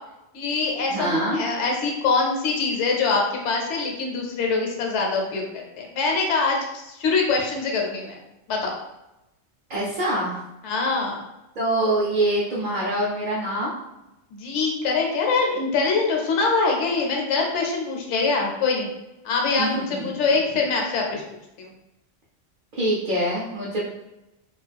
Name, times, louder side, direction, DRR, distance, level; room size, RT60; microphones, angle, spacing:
voice 1, 0.3-8.2 8.5-8.7 10.6-11.2 14.3-18.9 19.2-21.2 21.6-21.7, left 4 dB, 70° left, 0 dB, 0.9 m, -24 dB
voice 2, 0.9-1.4 9.7-10.4 11.6-13.7 19.6-20.1 22.7-23.8, right 1 dB, 50° right, -6 dB, 0.6 m, -24 dB
2.4 x 2.3 x 3.3 m, 0.93 s
omnidirectional pair, 1.3 m